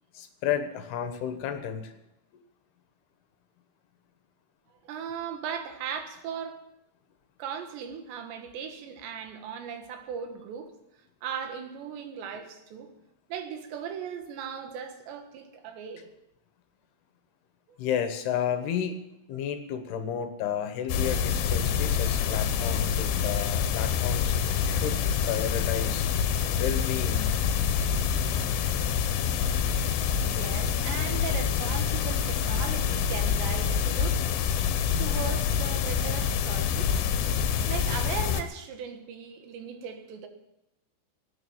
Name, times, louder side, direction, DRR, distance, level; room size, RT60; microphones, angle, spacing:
voice 1, 0.1-1.9 2.3-2.4 17.8-19.0 19.3-24.4 24.7-25.0 25.2-26.0 26.5-27.5, left 8 dB, 70° left, 8 dB, 3.2 m, -32 dB
voice 2, 4.8-6.6 7.4-10.7 11.2-12.9 13.3-16.1 17.7-17.8 30.3-34.2 35.0-36.9 37.7-40.3, right 7 dB, 80° right, 6 dB, 3.8 m, -38 dB
sound 1, 20.9-38.4, left 7 dB, 90° left, 3.4 m, -26 dB
17.5 x 10.0 x 7.2 m, 0.88 s
omnidirectional pair, 5.0 m